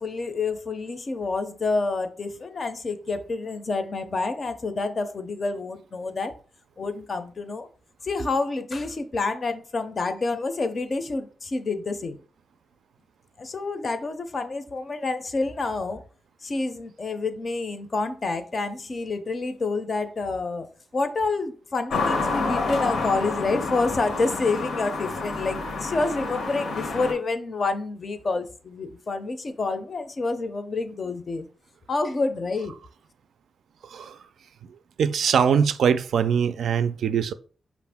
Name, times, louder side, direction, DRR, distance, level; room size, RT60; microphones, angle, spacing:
voice 1, 0.0-6.3 6.8-7.7 8.0-12.2 13.4-16.0 16.4-20.7 20.9-31.5 31.9-32.8, left 3 dB, 35° left, 0.5 m, -28 dB
sound 1, 21.9-27.1, left 3 dB, 85° left, 0.9 m, -28 dB
voice 2, 33.8-34.2 35.0-37.3, right 7 dB, 85° right, 0.3 m, -22 dB
5.4 x 2.5 x 3.4 m
wide cardioid pair, 170°, 0 cm